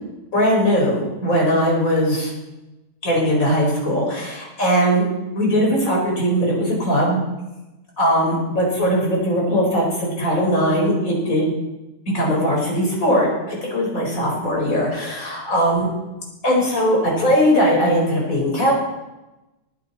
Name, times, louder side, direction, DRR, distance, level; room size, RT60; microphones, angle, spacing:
voice 1, 0.3-2.3 3.0-5.0 5.3-7.2 8.0-11.5 12.1-15.9 16.4-18.8, equal, 55° left, -3 dB, 5.1 m, -19 dB
19.0 x 10.5 x 4.2 m, 1.0 s
omnidirectional pair, 1.7 m